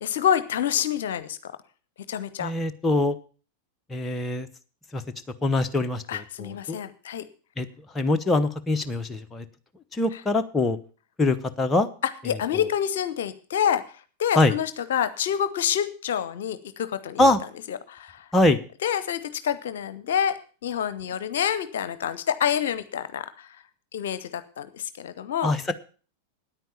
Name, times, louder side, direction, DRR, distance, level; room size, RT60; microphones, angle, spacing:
voice 1, 0.0-1.5 2.1-2.5 6.1-7.2 10.1-10.2 12.2-13.8 14.2-17.3 17.7-18.2 18.8-20.3 20.6-23.5 23.9-25.5, left 9 dB, 60° left, 14 dB, 0.8 m, -27 dB
voice 2, 2.4-3.2 3.9-4.5 4.9-5.0 5.4-6.8 7.6-7.7 7.9-9.4 9.9-10.8 11.2-11.9 12.3-12.4 14.3-14.5 17.2-17.4 18.3-18.6 25.4-25.7, left 2 dB, 15° left, 6 dB, 1.0 m, -23 dB
9.6 x 9.2 x 7.0 m, 0.39 s
figure-of-eight pair, 90°, 0 cm